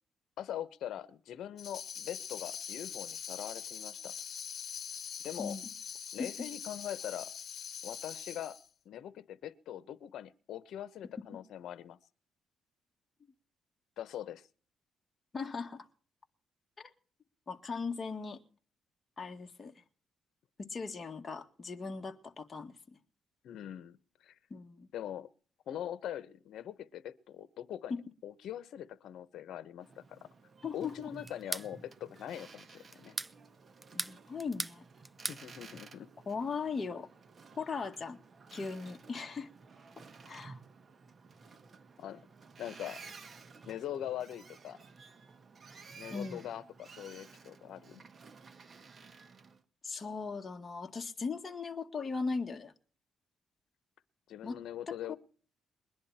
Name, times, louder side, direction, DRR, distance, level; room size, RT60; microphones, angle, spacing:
voice 1, 0.4-4.1 5.2-5.6 6.1-7.3 7.8-8.6 8.8-12.0 14.0-14.5 23.4-24.3 24.9-25.3 25.7-27.9 28.2-30.3 30.7-33.2 35.3-36.1 38.6-38.7 42.0-42.2 42.6-43.0 43.7-44.8 46.0-48.0 54.3-55.1, left 11 dB, 75° left, 1.1 m, -42 dB
Tambourine, 1.6-8.7, left 7 dB, 55° left, 1.6 m, -43 dB
voice 2, 5.4-5.7 6.2-6.3 15.3-15.9 16.8-16.9 17.5-18.4 19.2-19.8 20.7-22.8 24.5-24.9 27.9-28.0 30.6-31.1 33.9-34.8 36.3-37.1 37.5-38.2 38.5-39.5 40.3-40.6 46.1-46.5 49.8-52.7 54.4-54.6 54.9-55.2, left 4 dB, 30° left, 2.0 m, -38 dB
Boat Water vehicle, 29.8-49.6, right 4 dB, 40° right, 1.6 m, -54 dB
sound 1, 31.3-31.7 32.9-33.3 33.8-34.8 35.0-35.4, right 2 dB, 15° right, 0.6 m, -38 dB
21.5 x 11.0 x 4.4 m
cardioid pair, 90°, 0 cm